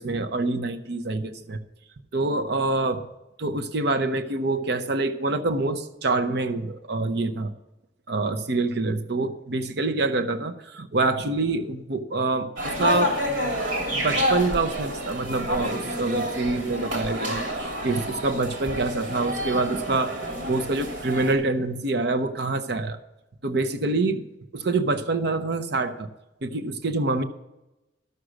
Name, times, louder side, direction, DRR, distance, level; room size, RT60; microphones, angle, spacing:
voice 1, 0.0-1.6 2.1-3.0 3.4-7.5 8.1-13.1 13.4-13.5 13.9-20.2 20.4-23.0 23.4-24.3 24.5-26.1 26.4-27.2, right 3 dB, 60° right, 10 dB, 0.7 m, -26 dB
sound 1, 12.6-21.3, equal, 75° right, 3.0 m, -29 dB
12.5 x 6.4 x 6.1 m, 0.97 s
head